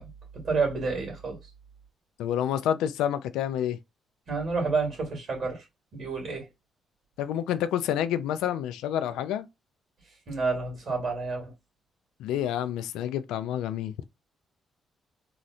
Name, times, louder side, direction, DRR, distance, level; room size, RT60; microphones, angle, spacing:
voice 1, 0.0-1.4 4.3-5.7 5.9-6.5 10.3-11.5, right 4 dB, 60° right, 2.1 m, -29 dB
voice 2, 2.2-3.8 7.2-9.4 12.2-13.9, left 10 dB, 85° left, 0.3 m, -28 dB
3.8 x 2.0 x 2.5 m
supercardioid pair, 55°, 0 cm